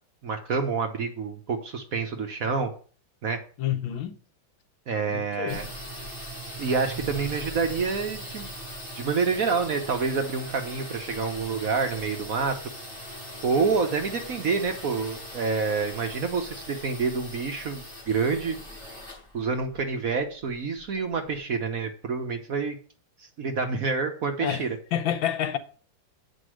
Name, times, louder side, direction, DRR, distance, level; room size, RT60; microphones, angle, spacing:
voice 1, 0.2-2.7 3.2-3.4 4.9-5.7 6.6-8.5 8.9-12.6 13.4-18.6 19.3-22.7 23.2-24.7, right 5 dB, 55° right, 1.1 m, -27 dB
voice 2, 3.6-4.2 5.1-5.6 24.4-24.6 24.9-25.6, left 10 dB, 75° left, 1.6 m, -28 dB
sound 1, 5.5-21.1, equal, 15° right, 5.5 m, -40 dB
8.3 x 5.4 x 6.2 m
omnidirectional pair, 2.2 m